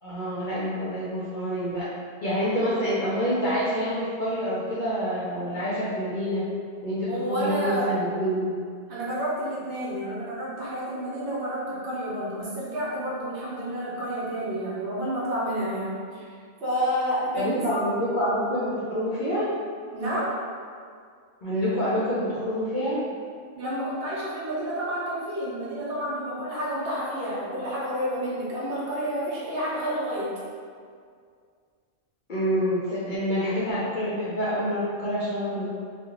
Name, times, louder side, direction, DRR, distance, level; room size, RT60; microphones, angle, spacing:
voice 1, 0.0-1.9 2.2-6.5 6.8-8.5 17.4-19.5 21.4-23.0 32.3-35.7, equal, 60° left, -9 dB, 0.5 m, -27 dB
voice 2, 7.1-7.9 8.9-16.3 16.6-17.5 19.9-20.3 23.5-30.3, equal, 60° right, -8 dB, 0.9 m, -30 dB
2.4 x 2.1 x 2.9 m, 2.1 s
omnidirectional pair, 1.3 m